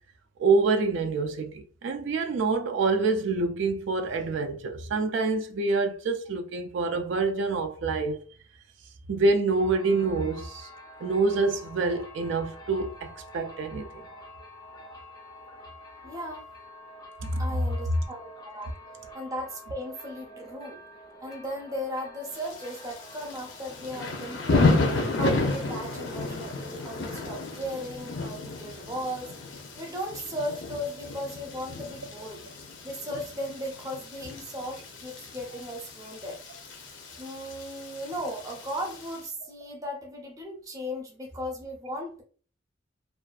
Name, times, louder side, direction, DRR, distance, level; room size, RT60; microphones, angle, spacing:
voice 1, 0.4-8.2 9.1-10.7 11.0-14.0 17.2-17.4, right 3 dB, 80° right, 0.4 m, -26 dB
sound 1, 9.5-25.9, left 1 dB, 20° left, 0.4 m, -48 dB
voice 2, 16.0-16.4 17.3-18.7 19.1-20.8 21.2-24.7 25.1-29.3 29.8-32.4 32.8-36.4 37.2-42.2, equal, 20° right, 0.6 m, -36 dB
Thunder / Rain, 22.3-39.2, left 3 dB, 85° left, 0.6 m, -32 dB
2.5 x 2.3 x 2.3 m
head